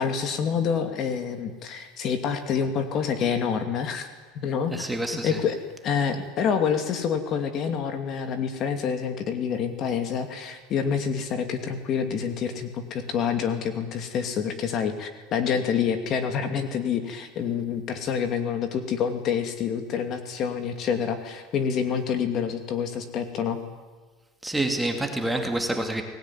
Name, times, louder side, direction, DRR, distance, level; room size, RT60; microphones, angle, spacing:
voice 1, 0.0-4.1 4.3-4.9 5.2-5.6 5.8-23.6, left 7 dB, 40° left, 7 dB, 2.5 m, -27 dB
voice 2, 4.7-5.4 24.4-26.0, right 1 dB, 5° right, 4 dB, 2.4 m, -27 dB
23.5 x 19.0 x 9.9 m, 1.4 s
supercardioid pair, 150°, 0 cm